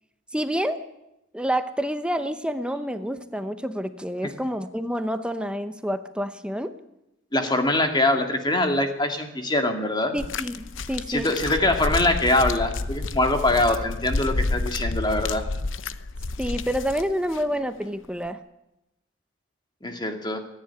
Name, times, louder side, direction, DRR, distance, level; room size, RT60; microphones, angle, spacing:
voice 1, 0.3-0.8 1.3-6.7 10.1-11.3 16.4-18.4, equal, 5° right, 10 dB, 0.8 m, -28 dB
voice 2, 7.3-10.2 11.1-15.4 19.8-20.4, left 2 dB, 20° left, 5 dB, 2.2 m, -23 dB
sound 1, 10.2-17.4 18.3-18.4, left 3 dB, 70° left, 0.9 m, -30 dB
26.0 x 10.5 x 9.8 m, 0.89 s
head